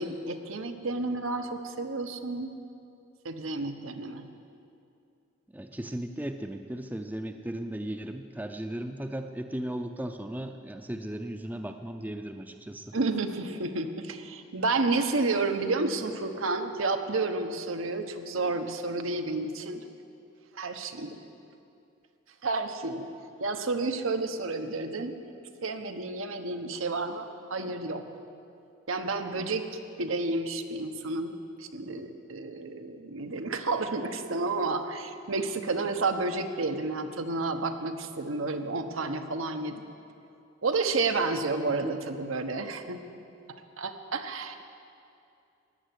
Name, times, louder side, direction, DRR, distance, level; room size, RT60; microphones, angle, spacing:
voice 1, 0.0-2.5 3.2-4.3 12.9-19.8 20.5-21.2 22.4-23.1 23.4-25.1 25.6-28.0 28.9-29.6 30.0-39.8 40.6-43.0 43.5-44.7, right 3 dB, 85° right, 6 dB, 1.0 m, -31 dB
voice 2, 5.5-13.0 41.7-41.9, right 1 dB, 10° right, 6 dB, 0.5 m, -36 dB
14.5 x 9.3 x 9.8 m, 2.6 s
head